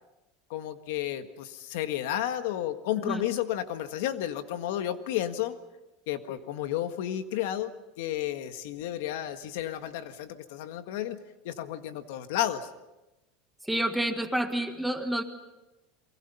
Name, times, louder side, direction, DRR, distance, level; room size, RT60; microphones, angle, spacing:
voice 1, 0.5-5.6 6.1-11.2 11.5-12.7, left 12 dB, 75° left, 9 dB, 1.7 m, -32 dB
voice 2, 13.6-15.2, right 1 dB, ahead, 5 dB, 1.7 m, -29 dB
29.0 x 23.5 x 5.6 m, 1.0 s
supercardioid pair, 150°, 0 cm